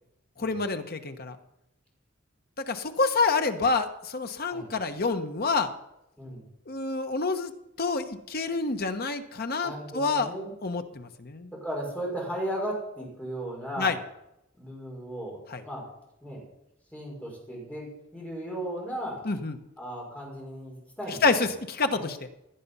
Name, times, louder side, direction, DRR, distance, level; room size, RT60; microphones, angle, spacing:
voice 1, 0.4-1.4 2.6-5.7 6.7-7.5 7.8-10.3 10.6-11.5 13.8-14.0 15.5-15.6 19.2-19.6 21.2-22.2, left 4 dB, 50° left, 7 dB, 1.1 m, -27 dB
voice 2, 9.6-10.5 11.6-14.0 14.5-15.8 16.2-16.4 16.9-17.8 18.1-19.2 19.8-21.3 21.8-22.1, right 1 dB, 5° left, -2 dB, 5.6 m, -36 dB
17.0 x 10.5 x 5.6 m, 0.86 s
head